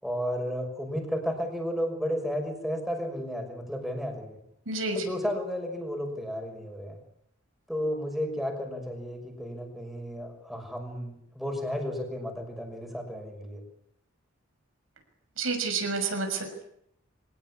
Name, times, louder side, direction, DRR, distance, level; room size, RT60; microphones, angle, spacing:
voice 1, 0.0-4.4 4.9-7.0 7.7-13.6, equal, ahead, 2 dB, 6.0 m, -33 dB
voice 2, 4.7-5.0 15.4-16.6, right 3 dB, 80° right, 5 dB, 6.3 m, -29 dB
24.0 x 19.0 x 9.8 m, 0.74 s
head